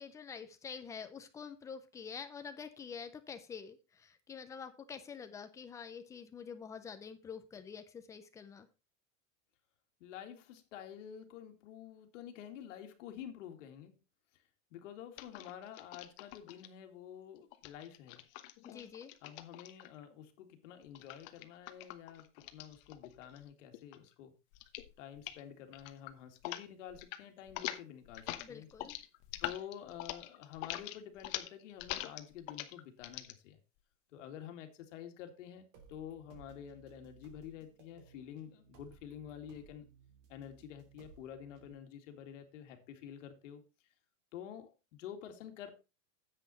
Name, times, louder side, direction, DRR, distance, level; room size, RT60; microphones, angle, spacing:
voice 1, 0.0-8.7 18.6-19.1 28.4-29.0, left 6 dB, 10° left, 0.4 m, -47 dB
voice 2, 10.0-14.0 14.7-18.2 19.2-24.3 25.0-28.7 29.4-33.6 34.1-39.9 40.3-43.6 44.3-45.7, left 9 dB, 65° left, 2.4 m, -49 dB
sound 1, 15.2-16.7 17.5-20.0 20.9-23.5 23.7-24.1 24.5-24.9 25.2-25.4 25.7-26.6 26.9-27.2 27.5-33.3, left 15 dB, 45° left, 1.1 m, -44 dB
sound 2, 35.7-41.7, right 6 dB, 50° right, 2.9 m, -61 dB
10.0 x 7.9 x 4.1 m
supercardioid pair, 165°, 40 cm